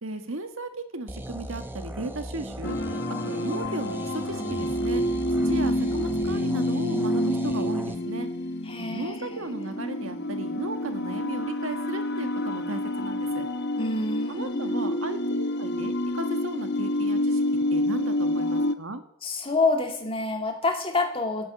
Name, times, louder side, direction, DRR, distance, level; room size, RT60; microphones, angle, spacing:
voice 1, 0.0-2.8 3.2-5.0 5.4-8.3 8.8-13.4 14.3-17.4 17.7-19.0, right 2 dB, 65° right, 8 dB, 1.7 m, -35 dB
sound 1, 1.1-8.0, right 1 dB, 10° right, 1.0 m, -37 dB
sound 2, 2.6-18.8, left 1 dB, 50° left, 1.0 m, -28 dB
voice 2, 5.4-6.2 8.6-9.8 13.8-15.0 19.2-21.5, left 3 dB, 25° left, 3 dB, 2.4 m, -28 dB
13.5 x 11.0 x 8.9 m, 0.74 s
head